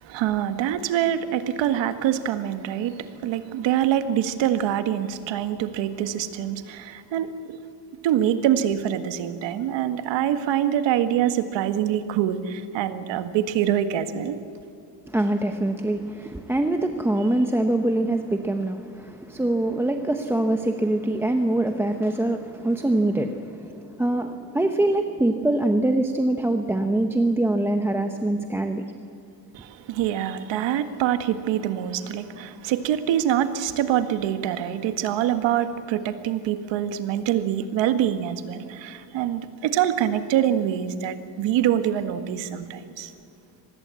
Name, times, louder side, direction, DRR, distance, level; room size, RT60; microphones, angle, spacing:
voice 1, 0.0-7.6 8.0-14.4 29.5-43.1, right 10 dB, 85° right, 10 dB, 1.7 m, -25 dB
voice 2, 15.1-28.8, right 1 dB, 5° right, 5 dB, 0.7 m, -24 dB
24.5 x 20.0 x 8.4 m, 2.6 s
cardioid pair, 175°, 43 cm